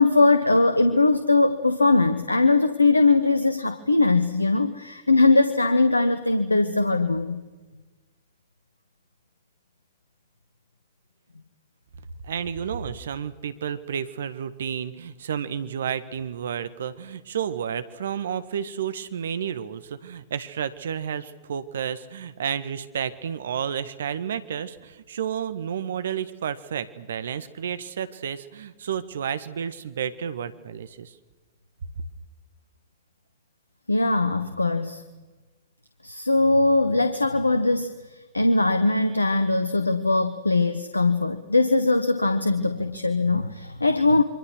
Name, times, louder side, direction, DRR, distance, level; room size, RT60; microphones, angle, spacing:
voice 1, 0.0-7.4 33.9-35.0 36.0-44.2, left 3 dB, 90° left, 11 dB, 1.2 m, -21 dB
voice 2, 12.2-31.2, right 8 dB, 65° right, 13 dB, 1.7 m, -31 dB
28.0 x 24.5 x 6.4 m, 1.2 s
figure-of-eight pair, 100°, 0 cm